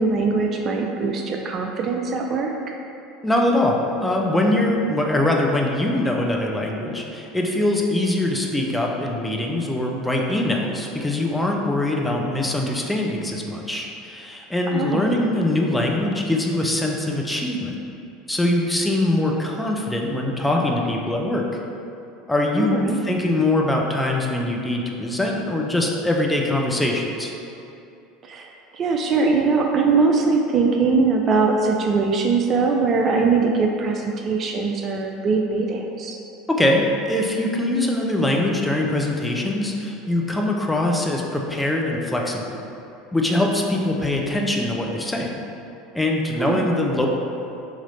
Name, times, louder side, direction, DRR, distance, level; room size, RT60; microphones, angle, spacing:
voice 1, 0.0-2.5 14.7-15.1 22.6-23.0 28.2-36.2 46.4-46.7, right 4 dB, 40° right, 2 dB, 0.4 m, -21 dB
voice 2, 3.2-17.9 18.3-21.5 22.3-27.3 36.5-42.5 43.1-45.4 45.9-47.1, left 1 dB, 10° left, -1 dB, 0.6 m, -22 dB
3.9 x 3.0 x 4.1 m, 2.7 s
figure-of-eight pair, 75°, 0 cm